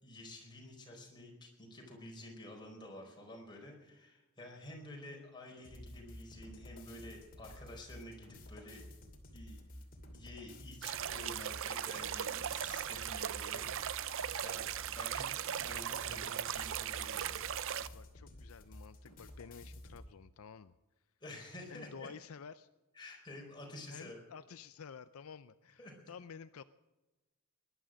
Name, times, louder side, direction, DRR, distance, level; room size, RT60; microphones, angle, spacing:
voice 1, 0.0-8.8 9.3-9.6 10.1-17.3 21.2-22.1 23.0-24.2 25.8-26.0, left 1 dB, 20° left, 0 dB, 4.6 m, -50 dB
sound 1, 5.6-20.1, left 1 dB, 40° left, 2.8 m, -52 dB
sound 2, 10.8-17.9, right 9 dB, 60° right, 0.6 m, -38 dB
voice 2, 17.7-20.7 21.7-22.7 23.9-26.6, left 6 dB, 70° left, 12 dB, 0.5 m, -51 dB
20.0 x 11.5 x 6.4 m, 1.1 s
head